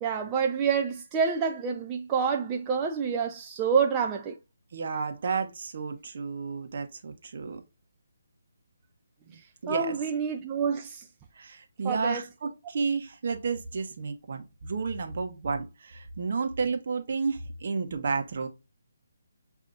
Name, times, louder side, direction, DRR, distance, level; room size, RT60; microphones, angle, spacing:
voice 1, 0.0-4.4 9.3-9.4 9.7-11.0 11.8-12.2, right 6 dB, 20° right, 0.4 m, -27 dB
voice 2, 4.7-7.6 9.6-9.9 11.4-18.5, right 4 dB, 55° right, 0.9 m, -31 dB
6.7 x 2.7 x 2.4 m
figure-of-eight pair, 155°, 0 cm